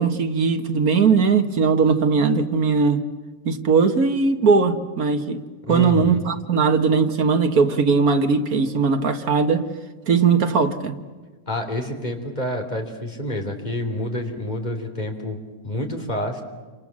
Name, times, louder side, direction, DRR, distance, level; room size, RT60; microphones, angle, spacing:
voice 1, 0.0-3.0 3.5-5.4 5.7-9.7 10.1-11.0, right 5 dB, 80° right, 2.0 m, -19 dB
voice 2, 5.7-6.3 11.5-15.4 15.6-16.4, left 1 dB, 30° left, 3.4 m, -28 dB
29.0 x 26.5 x 7.5 m
omnidirectional pair, 1.5 m